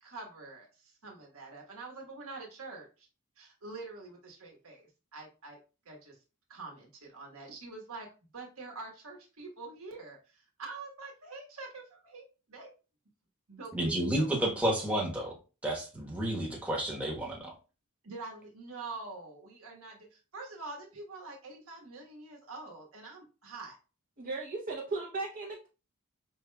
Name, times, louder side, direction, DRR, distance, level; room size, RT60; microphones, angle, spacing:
voice 1, 0.0-3.1 3.4-5.6 5.8-6.2 6.5-8.1 8.3-12.7 13.5-14.5 18.0-23.8, right 3 dB, 65° right, 1 dB, 1.3 m, -46 dB
voice 2, 13.7-15.3 15.6-17.5, right 1 dB, 5° right, -3 dB, 1.1 m, -31 dB
voice 3, 24.2-25.7, right 3 dB, 40° right, -3 dB, 0.8 m, -36 dB
5.2 x 3.2 x 2.2 m, 0.31 s
head